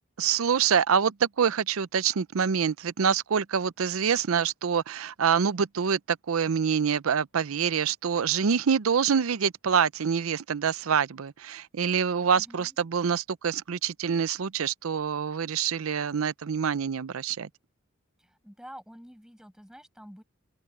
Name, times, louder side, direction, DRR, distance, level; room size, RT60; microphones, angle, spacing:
voice 1, 0.2-17.5, right 7 dB, 85° right, 0.5 m, -26 dB
voice 2, 12.3-12.8 18.2-20.2, equal, 5° right, 7.2 m, -48 dB
open air
head